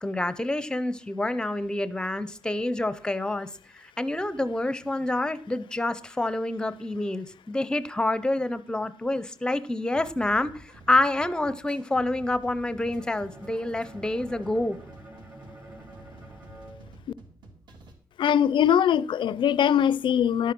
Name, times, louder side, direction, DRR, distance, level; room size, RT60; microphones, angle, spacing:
voice 1, 0.0-3.5 3.8-14.8, left 2 dB, 10° left, 0.7 m, -27 dB
sound 1, 9.9-17.9, right 2 dB, 60° right, 2.8 m, -50 dB
Bowed string instrument, 13.0-17.9, right 1 dB, 30° right, 1.8 m, -49 dB
voice 2, 18.2-20.5, left 9 dB, 65° left, 0.4 m, -22 dB
12.0 x 9.0 x 6.0 m
wide cardioid pair, 180°, 9 cm